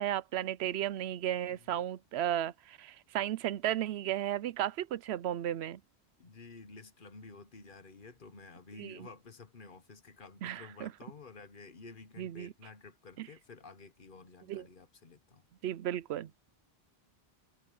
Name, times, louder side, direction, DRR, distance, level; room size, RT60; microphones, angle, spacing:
voice 1, 0.0-5.8 8.8-8.9 10.4-10.9 12.2-12.5 13.2-13.3 14.5-14.6 15.6-16.5, right 12 dB, 80° right, 0.8 m, -34 dB
voice 2, 6.2-15.4, left 4 dB, 55° left, 1.3 m, -52 dB
omnidirectional pair, 1.1 m